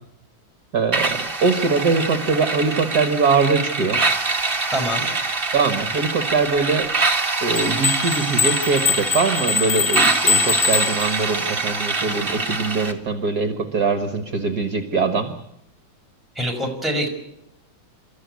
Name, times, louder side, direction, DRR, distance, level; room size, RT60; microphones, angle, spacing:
voice 1, 0.7-4.0 5.5-6.9 7.4-15.4, right 4 dB, 55° right, 8 dB, 2.0 m, -22 dB
sound 1, 0.9-12.9, right 3 dB, 30° right, 2.2 m, -24 dB
voice 2, 4.7-5.0 16.3-17.1, equal, ahead, 0 dB, 6.0 m, -24 dB
sound 2, 7.5-11.5, left 6 dB, 35° left, 1.5 m, -23 dB
28.5 x 13.5 x 9.5 m, 0.83 s
omnidirectional pair, 2.0 m